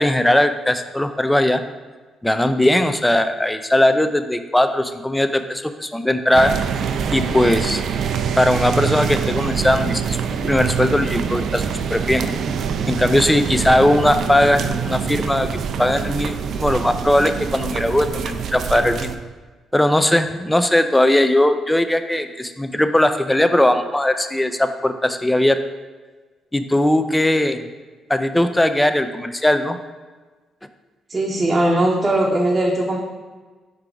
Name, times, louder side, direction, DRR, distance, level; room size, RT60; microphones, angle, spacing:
voice 1, 0.0-1.6 2.2-6.5 7.1-7.8 8.4-11.6 11.9-12.2 12.9-19.1 19.7-25.6 26.5-27.6 28.1-29.8, left 1 dB, 10° left, 9 dB, 0.4 m, -19 dB
sound 1, 6.3-19.1, right 7 dB, 65° right, 0.4 m, -25 dB
voice 2, 31.1-33.0, right 1 dB, 20° right, -2 dB, 0.8 m, -19 dB
5.7 x 4.7 x 3.8 m, 1.3 s
cardioid pair, 90°, 0 cm